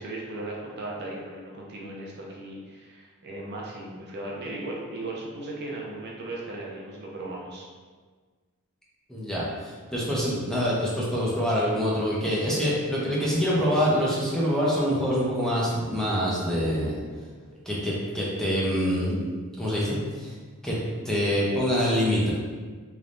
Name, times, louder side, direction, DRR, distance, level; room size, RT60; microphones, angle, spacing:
voice 1, 0.0-7.7, right 2 dB, 50° right, -3 dB, 0.6 m, -37 dB
voice 2, 9.1-17.0 17.7-19.2 19.6-20.3 20.6-20.8 21.0-22.3, equal, 5° left, -7 dB, 0.7 m, -25 dB
3.3 x 3.1 x 2.5 m, 1.5 s
head